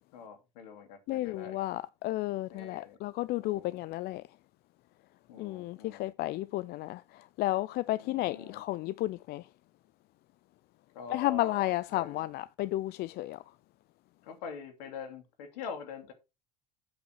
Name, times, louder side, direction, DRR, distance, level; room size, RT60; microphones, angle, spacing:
voice 1, 0.1-1.6 2.5-3.0 3.4-3.8 5.3-6.1 8.0-8.6 10.9-12.3 14.2-16.1, left 6 dB, 70° left, 2.8 m, -44 dB
voice 2, 1.1-4.2 5.4-9.4 11.1-13.4, left 17 dB, 50° left, 0.4 m, -32 dB
8.2 x 6.1 x 4.7 m
hypercardioid pair, 70°, 21 cm